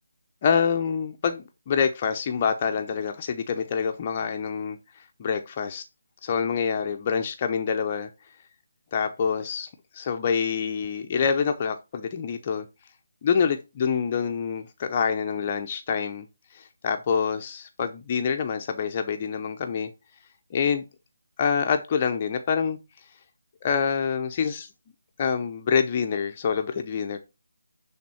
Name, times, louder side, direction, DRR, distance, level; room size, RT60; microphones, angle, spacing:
voice 1, 0.4-5.8 6.2-8.1 8.9-9.7 9.9-12.7 13.2-16.3 16.5-19.9 20.5-20.8 21.4-22.8 23.6-24.7 25.2-27.2, left 6 dB, 30° left, 0.7 m, -26 dB
10.0 x 3.6 x 4.3 m
figure-of-eight pair, 155°, 0 cm